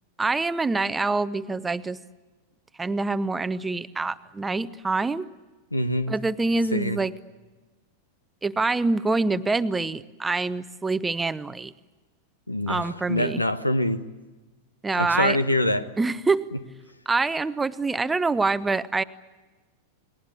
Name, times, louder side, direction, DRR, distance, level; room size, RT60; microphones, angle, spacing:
voice 1, 0.2-2.0 2.8-5.3 6.1-7.1 8.4-11.7 12.7-13.4 14.8-15.4 16.0-16.5 17.1-19.0, right 3 dB, 10° right, 14 dB, 0.8 m, -25 dB
voice 2, 5.7-6.2 6.7-7.0 12.5-14.0 14.9-15.9, left 1 dB, 85° left, 13 dB, 1.2 m, -25 dB
29.5 x 21.0 x 8.3 m, 1.2 s
figure-of-eight pair, 90°, 0 cm